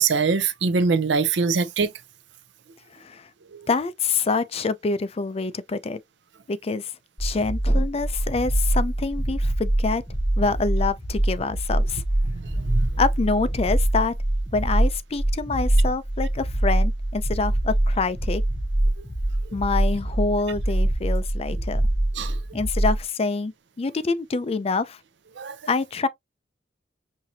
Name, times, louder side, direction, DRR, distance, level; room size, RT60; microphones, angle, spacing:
voice 1, 0.0-1.9 12.3-12.9 22.2-22.3 25.4-25.6, right 5 dB, 65° right, 0.6 m, -23 dB
voice 2, 3.7-6.0 6.5-6.9 7.2-10.0 10.4-12.0 13.0-14.1 14.5-18.4 19.5-21.8 22.5-23.5 23.8-25.0 25.7-26.1, left 4 dB, 35° left, 0.4 m, -26 dB
irregular heartbeat, 7.2-23.0, right 1 dB, ahead, 1.0 m, -24 dB
5.7 x 2.7 x 2.7 m
head